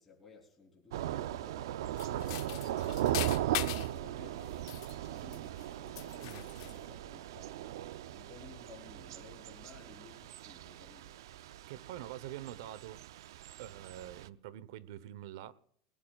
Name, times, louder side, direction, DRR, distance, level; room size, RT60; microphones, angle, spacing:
voice 1, 0.0-7.7 8.1-11.2, left 4 dB, 10° left, 3.6 m, -57 dB
Thunder / Rain, 0.9-14.3, right 12 dB, 90° right, 0.6 m, -38 dB
sound 1, 2.0-4.0 4.5-5.7 6.0-6.8, left 17 dB, 60° left, 0.7 m, -41 dB
voice 2, 11.7-13.0 13.6-15.5, right 12 dB, 65° right, 0.9 m, -45 dB
19.5 x 19.5 x 2.4 m
supercardioid pair, 170°, 2 cm